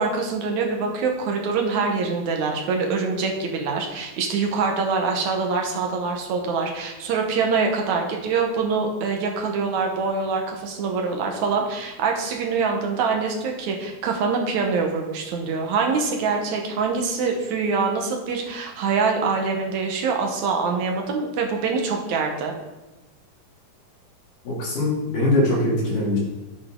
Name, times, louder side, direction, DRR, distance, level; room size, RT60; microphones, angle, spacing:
voice 1, 0.0-22.5, right 4 dB, 65° right, 2 dB, 2.3 m, -24 dB
voice 2, 24.4-26.2, left 1 dB, 70° left, -5 dB, 4.3 m, -22 dB
10.5 x 8.1 x 3.8 m, 1.1 s
omnidirectional pair, 3.9 m